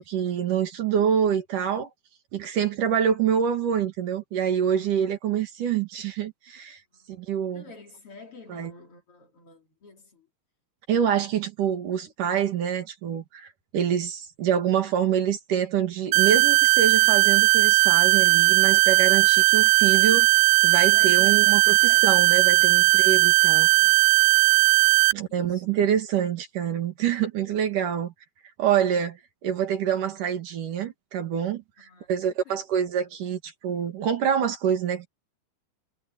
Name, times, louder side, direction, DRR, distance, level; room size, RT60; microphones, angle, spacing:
voice 1, 0.0-1.9 2.3-6.8 7.1-7.7 8.5-8.7 10.9-20.3 20.6-23.7 25.1-28.1 28.6-35.1, right 8 dB, 65° right, 3.6 m, -26 dB
voice 2, 7.5-10.3 20.9-22.1 23.0-23.3 23.7-24.1 25.3-25.6 27.0-27.1 31.8-32.6, left 4 dB, 40° left, 3.5 m, -49 dB
sound 1, 16.1-25.1, right 24 dB, 80° right, 2.2 m, -18 dB
omnidirectional pair, 4.0 m